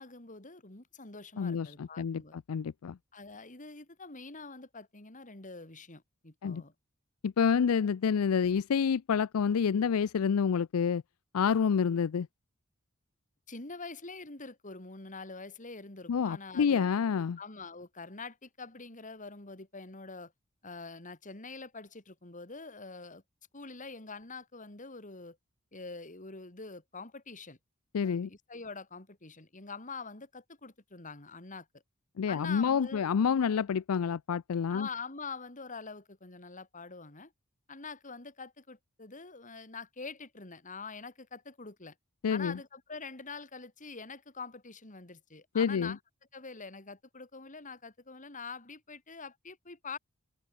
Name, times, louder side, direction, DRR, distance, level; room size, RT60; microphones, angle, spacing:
voice 1, 0.0-2.3 3.1-6.7 13.5-16.9 17.4-20.3 20.6-23.2 23.5-25.4 25.7-27.6 28.0-31.8 32.3-33.0 34.7-37.3 37.7-41.9 42.3-46.0 46.3-50.0, left 4 dB, 35° left, 3.4 m, -45 dB
voice 2, 1.4-3.0 6.4-6.6 7.2-11.0 11.3-12.3 16.1-17.4 27.9-28.3 32.2-34.9 42.2-42.6 45.5-46.0, left 6 dB, 90° left, 0.4 m, -28 dB
head